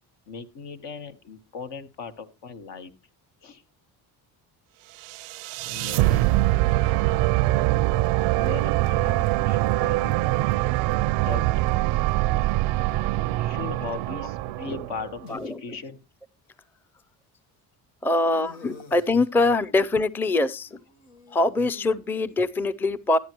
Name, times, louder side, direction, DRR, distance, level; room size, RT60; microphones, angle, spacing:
voice 1, 0.3-2.9 3.4-3.6 5.6-6.3 6.6-7.1 8.3-10.3 11.1-11.5 13.4-16.0, left 5 dB, 70° left, 1.4 m, -38 dB
sound 1, 5.0-15.2, right 17 dB, 85° right, 0.5 m, -23 dB
sound 2, 14.3-15.5 16.5-16.6 18.2-19.3 20.6-21.9, left 3 dB, 90° left, 1.5 m, -49 dB
voice 2, 15.3-15.6 18.0-20.8 21.3-23.2, left 2 dB, 5° left, 0.5 m, -23 dB
13.0 x 9.7 x 3.0 m
supercardioid pair, 65°, 44 cm